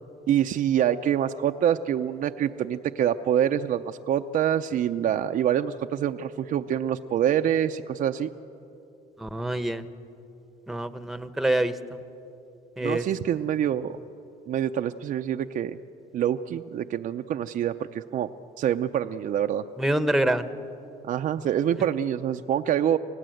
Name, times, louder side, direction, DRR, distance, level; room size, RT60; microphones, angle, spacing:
voice 1, 0.3-8.3 12.8-14.0 14.5-15.8 16.1-18.3 18.6-19.7 21.0-23.0, right 10 dB, 55° right, 6 dB, 0.6 m, -26 dB
voice 2, 9.2-9.8 10.7-12.0 12.8-13.1 19.8-20.5, right 1 dB, ahead, 11 dB, 1.0 m, -26 dB
26.5 x 17.5 x 7.8 m, 2.8 s
cardioid pair, 110°, 17 cm